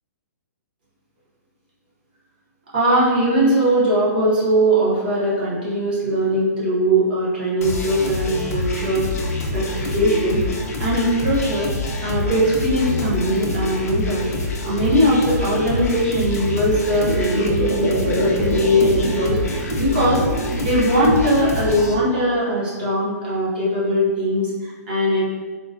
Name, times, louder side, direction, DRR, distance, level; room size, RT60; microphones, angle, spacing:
voice 1, 2.7-11.7 12.0-14.3 14.6-25.2, right 1 dB, 30° right, -7 dB, 0.6 m, -20 dB
sound 1, 7.6-21.9, left 3 dB, 60° left, 0.5 m, -26 dB
sound 2, 17.1-19.2 19.4-20.8 21.2-22.1 22.8-22.9, right 1 dB, 55° right, 0.9 m, -27 dB
3.6 x 2.0 x 2.4 m, 1.4 s
hypercardioid pair, 175°, 9 cm